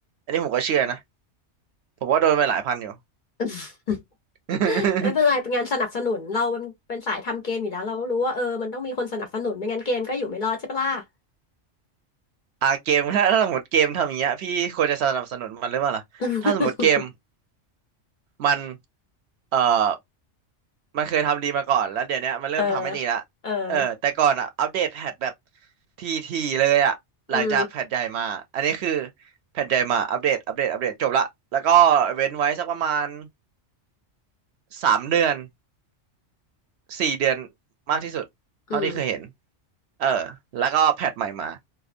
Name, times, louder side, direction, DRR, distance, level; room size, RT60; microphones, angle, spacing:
voice 1, 0.3-1.0 2.0-2.9 4.5-5.1 12.6-16.0 16.4-17.1 18.4-18.8 19.5-20.0 20.9-23.2 23.7-25.3 26.0-27.0 27.3-29.1 29.5-33.3 34.7-35.5 36.9-37.5 37.9-38.2 38.7-39.3 40.0-41.6, right 8 dB, 70° right, 0.8 m, -23 dB
voice 2, 3.4-4.0 4.6-11.0 16.2-16.9 22.6-23.0 23.4-23.8 27.3-27.7 38.7-39.0, left 4 dB, 50° left, 0.6 m, -26 dB
2.7 x 2.1 x 2.4 m
omnidirectional pair, 1.2 m